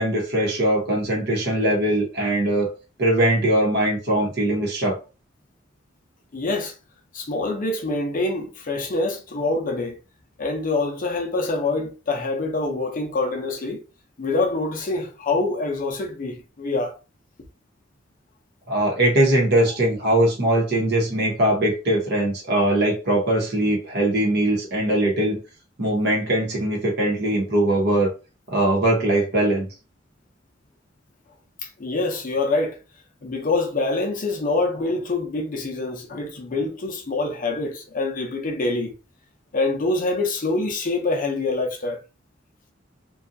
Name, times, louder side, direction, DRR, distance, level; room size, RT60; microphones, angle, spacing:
voice 1, 0.0-2.7 3.0-5.0 18.7-25.4 25.8-28.1 28.5-29.7, right 1 dB, 60° right, 0.9 m, -21 dB
voice 2, 6.3-6.8 7.1-10.0 10.4-13.8 14.2-17.0 31.6-32.8 33.2-38.9 39.5-42.0, left 2 dB, 45° left, 0.5 m, -25 dB
2.6 x 2.3 x 2.6 m
head